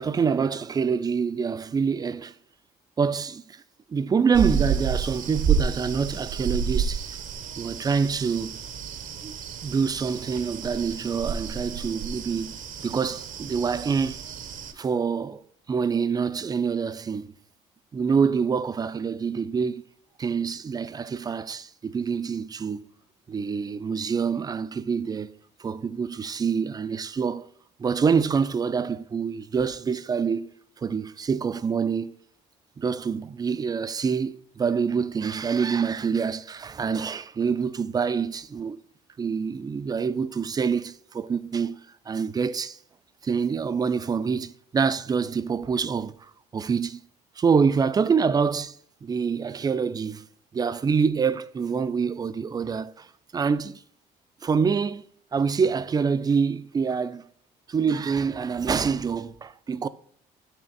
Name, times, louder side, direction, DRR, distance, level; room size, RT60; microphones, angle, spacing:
voice 1, 0.0-2.3 3.0-3.6 3.9-7.2 7.6-8.6 9.2-9.4 9.6-12.6 12.8-14.2 14.7-15.4 15.7-17.3 17.9-19.8 20.2-22.9 23.3-27.5 27.8-30.5 30.8-32.2 32.8-38.8 39.2-41.8 42.1-42.8 43.2-47.0 47.4-50.3 50.5-53.1 53.3-53.8 54.4-57.3 57.7-59.9, right 6 dB, 25° right, 0.3 m, -26 dB
sound 1, 4.3-14.7, right 7 dB, 50° right, 0.6 m, -30 dB
6.3 x 3.4 x 4.6 m
cardioid pair, 110°, 17 cm